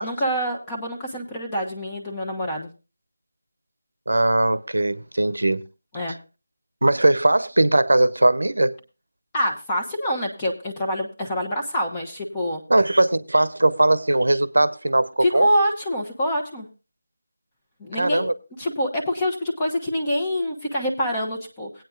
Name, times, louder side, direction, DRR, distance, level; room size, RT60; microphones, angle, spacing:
voice 1, 0.0-2.7 5.9-6.2 9.3-12.6 15.2-16.7 17.8-18.3 18.6-21.8, equal, 15° left, 1.2 m, -26 dB
voice 2, 4.1-5.6 6.8-8.8 12.7-15.5 18.0-18.3, right 2 dB, 85° right, 0.8 m, -19 dB
18.0 x 9.1 x 2.5 m
figure-of-eight pair, 165°, 0 cm